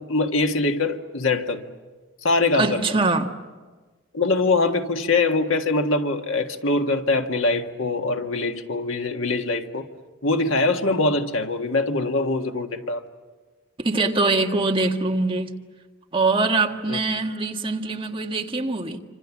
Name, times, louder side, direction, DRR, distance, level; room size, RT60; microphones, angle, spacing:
voice 1, 0.0-1.6 2.2-2.8 4.1-9.9 10.2-13.0 16.9-17.0, left 3 dB, 85° left, 1.7 m, -23 dB
voice 2, 2.5-3.3 13.8-15.5 16.1-19.0, right 3 dB, 25° right, 1.5 m, -23 dB
27.0 x 26.0 x 7.3 m
head